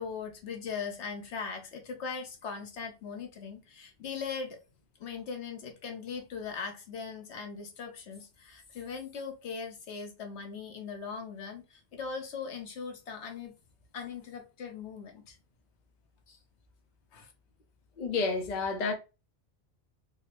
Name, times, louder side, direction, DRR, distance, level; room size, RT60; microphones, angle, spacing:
voice 1, 0.0-4.6 5.0-13.5 13.9-15.4 16.3-16.4 17.1-17.3, left 5 dB, 75° left, 1.2 m, -40 dB
voice 2, 18.0-18.9, left 4 dB, 45° left, 0.7 m, -30 dB
3.9 x 2.0 x 2.8 m
omnidirectional pair, 1.2 m